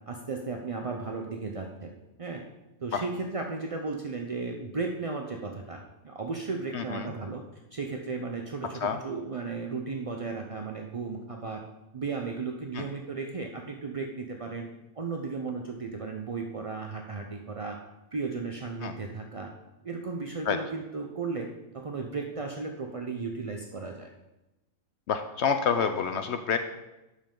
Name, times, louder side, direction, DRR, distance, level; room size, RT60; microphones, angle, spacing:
voice 1, 0.1-1.9 2.2-2.4 2.8-7.4 7.7-11.6 11.9-14.7 15.0-17.8 18.1-19.5 19.8-21.5 21.7-24.1, right 4 dB, 55° right, 2 dB, 0.3 m, -35 dB
voice 2, 6.7-7.1 8.8-9.0 12.7-12.8 18.8-18.9 20.5-20.6 25.1-26.6, left 6 dB, 65° left, 8 dB, 0.7 m, -28 dB
11.5 x 5.5 x 3.8 m, 0.99 s
omnidirectional pair, 1.5 m